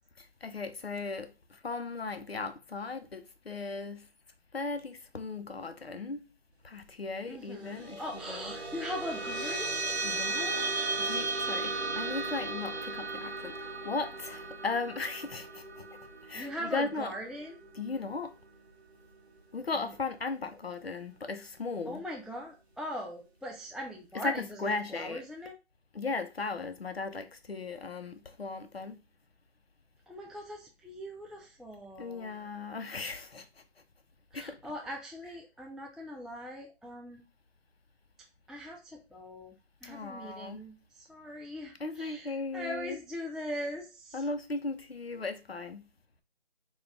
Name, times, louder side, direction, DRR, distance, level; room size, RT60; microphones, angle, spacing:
voice 1, 0.2-4.1 4.5-6.2 6.6-8.6 10.0-17.1 17.7-18.3 19.5-22.0 24.1-25.2 25.9-29.0 32.0-33.6 34.3-34.6 39.8-40.6 41.8-43.0 44.1-45.9, left 3 dB, 60° left, 0.6 m, -37 dB
voice 2, 7.3-10.1 16.3-17.6 21.9-25.5 30.1-32.4 34.3-37.2 38.5-39.5 39.8-44.2, equal, ahead, 0.3 m, -41 dB
sound 1, 7.6-18.3, right 3 dB, 60° right, 0.9 m, -36 dB
4.0 x 2.3 x 3.4 m
figure-of-eight pair, 180°, 35 cm